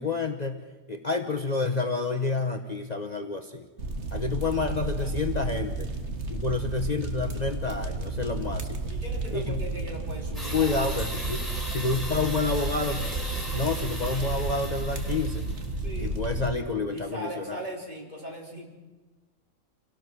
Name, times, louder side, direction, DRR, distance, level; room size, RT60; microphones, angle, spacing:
voice 1, 0.0-3.6 4.1-5.9 6.3-8.9 9.3-9.6 10.5-13.1 13.5-15.5 16.0-17.6, left 4 dB, 35° left, 5 dB, 1.1 m, -29 dB
sound 1, 3.8-16.5, right 3 dB, 65° right, 2.0 m, -32 dB
voice 2, 8.9-10.9 15.8-16.1 16.9-18.7, right 1 dB, 35° right, -2 dB, 4.1 m, -39 dB
sound 2, 10.3-15.7, equal, ahead, 6.1 m, -37 dB
27.5 x 18.0 x 6.2 m, 1.2 s
omnidirectional pair, 1.2 m